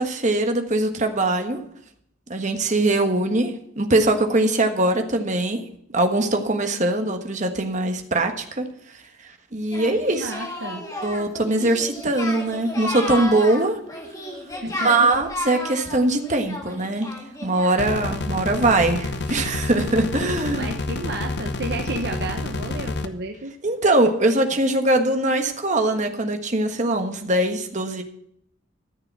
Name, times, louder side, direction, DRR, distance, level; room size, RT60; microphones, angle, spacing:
voice 1, 0.0-1.6 2.3-5.6 5.9-8.6 9.5-10.3 11.0-13.8 14.8-17.1 17.4-20.7 23.6-28.0, right 2 dB, 35° right, 5 dB, 1.5 m, -21 dB
Singing, 9.7-18.1, left 1 dB, 15° left, 2.0 m, -33 dB
voice 2, 10.1-10.8 14.6-15.1 20.6-23.5, right 2 dB, 55° right, 4 dB, 1.1 m, -32 dB
sound 1, 17.8-23.1, left 2 dB, 55° left, 1.0 m, -29 dB
14.0 x 6.8 x 7.3 m, 0.71 s
head